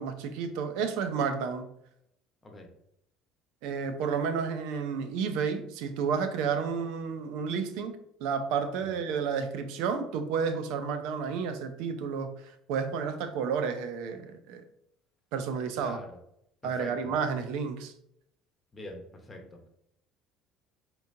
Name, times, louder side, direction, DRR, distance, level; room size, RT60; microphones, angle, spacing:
voice 1, 0.0-1.7 3.6-12.3 12.7-14.6 15.3-16.0 16.6-17.9, right 6 dB, 75° right, 0.5 m, -31 dB
voice 2, 15.8-16.2 16.6-17.1 18.7-19.7, left 2 dB, 25° left, 1.0 m, -44 dB
4.9 x 2.9 x 2.7 m
supercardioid pair, 90°, 0 cm